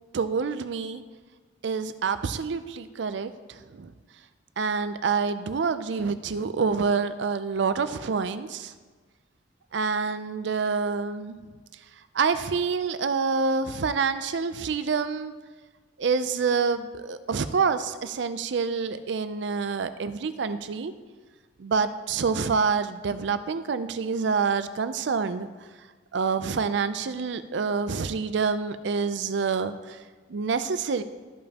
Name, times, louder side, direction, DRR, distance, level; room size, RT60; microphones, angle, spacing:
voice 1, 0.1-1.0 1.6-3.9 4.6-8.7 9.7-11.4 12.1-15.3 16.0-20.9 21.6-25.5 26.1-30.0 30.3-31.0, right 5 dB, 70° right, 12 dB, 0.5 m, -27 dB
13.5 x 5.2 x 2.9 m, 1.4 s
head